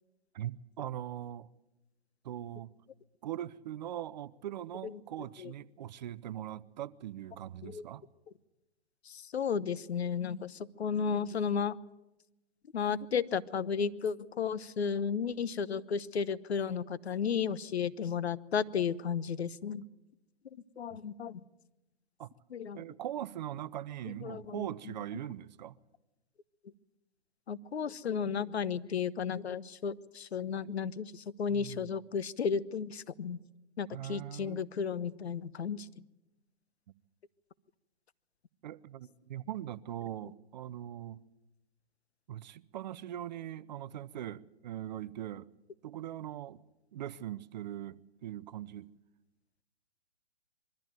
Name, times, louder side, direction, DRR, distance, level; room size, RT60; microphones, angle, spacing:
voice 1, 0.3-1.5 2.2-2.7 3.2-8.0 22.2-22.3 22.8-25.7 30.6-30.8 31.5-31.9 33.9-34.7 38.6-41.2 42.3-45.5 45.8-46.6 46.9-48.9, right 12 dB, 45° right, 0.7 m, -41 dB
voice 2, 9.1-11.8 12.7-19.8 20.8-21.4 22.5-22.8 24.0-24.7 27.5-33.4 33.8-35.9, left 6 dB, 75° left, 1.0 m, -33 dB
22.5 x 14.0 x 9.1 m
hypercardioid pair, 140°, 32 cm